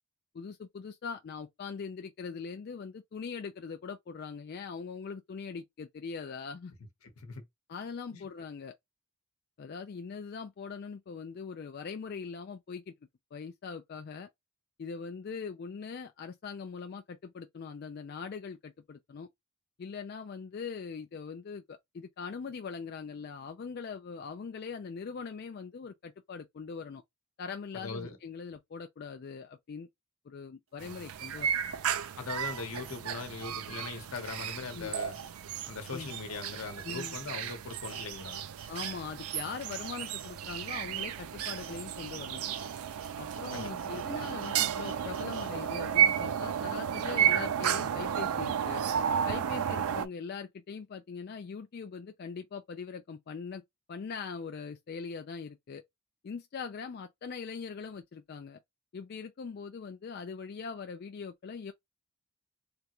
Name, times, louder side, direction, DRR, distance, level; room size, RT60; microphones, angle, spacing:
voice 1, 0.3-6.7 7.7-8.7 9.6-12.9 13.3-14.3 14.8-19.3 19.8-27.0 27.4-29.9 30.3-31.5 34.7-34.9 35.9-36.1 36.8-37.2 38.7-42.4 43.2-48.8 49.2-53.6 53.9-55.8 56.2-58.6 58.9-61.7, left 5 dB, 45° left, 0.3 m, -41 dB
voice 2, 7.0-7.4 8.1-8.3 27.7-28.2 32.2-35.2 35.6-38.4 43.5-43.9, left 4 dB, 80° left, 0.9 m, -40 dB
sound 1, 30.8-30.9 31.6-38.9 39.2-45.5 45.9-46.0, right 6 dB, 65° right, 0.8 m, -50 dB
sound 2, 30.8-50.1, right 9 dB, 85° right, 0.4 m, -33 dB
3.4 x 2.5 x 2.9 m
head